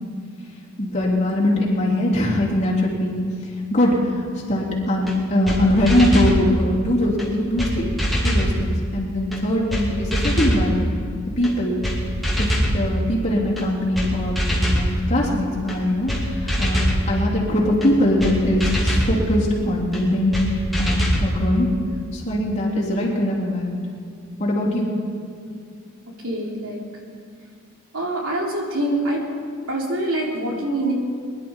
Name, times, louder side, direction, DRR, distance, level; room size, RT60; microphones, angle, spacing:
voice 1, 0.8-3.2 3.7-7.9 8.2-10.9 11.4-11.8 12.4-21.7 22.1-23.8 24.4-24.9, left 1 dB, 35° left, -5 dB, 3.2 m, -21 dB
sound 1, 5.1-5.2 5.5-5.6 5.9-6.4 7.2-7.3 7.6-7.7 8.0-8.5 9.3-9.4 9.7-9.8 10.1-10.6 11.4-11.5 11.8-12.0 12.2-12.7 13.6-13.7 14.0-14.1 14.4-14.9 15.7-15.8 16.1-16.2 16.5-17.0 17.8-17.9 18.2-18.3 18.6-19.1 19.9-20.0 20.3-20.5 20.7-21.2, equal, ahead, 2.5 m, -22 dB
voice 2, 26.2-26.8 27.9-29.3 29.7-30.9, right 1 dB, 85° right, -1 dB, 2.9 m, -25 dB
22.0 x 11.5 x 4.5 m, 2.4 s
head